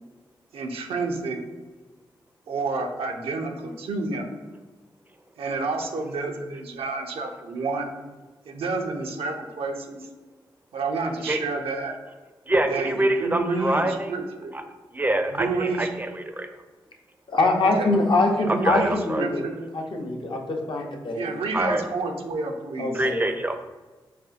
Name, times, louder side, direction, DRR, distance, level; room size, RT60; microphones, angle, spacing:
voice 1, 0.5-1.4 2.5-4.3 5.4-7.9 8.5-10.1 10.7-12.0 12.7-14.5 15.3-15.9 17.6-17.9 18.5-19.6 21.1-23.1, right 3 dB, 75° right, 3 dB, 0.5 m, -29 dB
voice 2, 12.5-14.1 14.5-14.6 14.9-16.5 18.6-19.2 21.5-21.8 22.9-23.6, right 1 dB, 20° right, 6 dB, 0.4 m, -25 dB
voice 3, 17.3-19.4 19.7-21.2 22.8-23.2, left 2 dB, 55° left, 1 dB, 0.6 m, -23 dB
4.1 x 2.1 x 2.4 m, 1.3 s
supercardioid pair, 40°, 10 cm